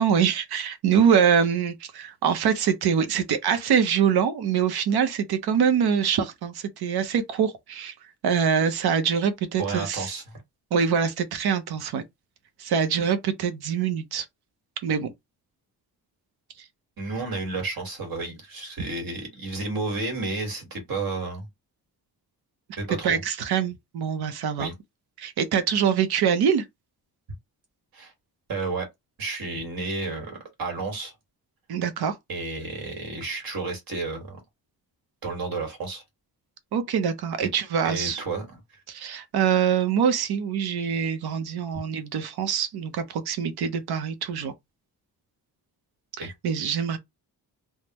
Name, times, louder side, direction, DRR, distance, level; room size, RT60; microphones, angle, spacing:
voice 1, 0.0-7.9 8.2-10.1 10.7-12.0 12.6-14.3 14.8-15.1 23.0-24.7 25.2-26.6 31.7-32.2 36.7-38.2 38.9-44.5 46.2-47.0, right 7 dB, 85° right, 0.7 m, -24 dB
voice 2, 9.6-10.4 17.0-21.5 22.8-23.2 24.6-24.7 27.9-28.1 28.5-28.9 29.2-31.1 32.3-34.4 35.2-36.0 37.4-37.5 37.8-38.5 46.2-46.3, right 3 dB, 65° right, 1.7 m, -31 dB
3.5 x 2.1 x 2.9 m
wide cardioid pair, 145°, 37 cm